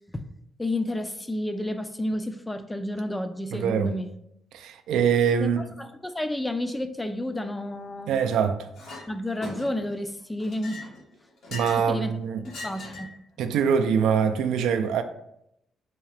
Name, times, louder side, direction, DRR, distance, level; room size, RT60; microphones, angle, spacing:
voice 1, 0.6-4.1 5.4-8.1 9.1-10.8 11.8-12.1 12.4-13.1, left 1 dB, 10° left, 0.4 m, -31 dB
voice 2, 3.5-3.9 4.5-5.6 8.1-8.7 11.5-12.4 13.4-15.0, right 7 dB, 85° right, 0.3 m, -23 dB
Chink clink, 8.7-9.0 9.4-9.9 10.4-11.9 12.4-13.2, left 2 dB, 75° left, 1.3 m, -40 dB
3.6 x 2.7 x 3.3 m
cardioid pair, 90°, 0 cm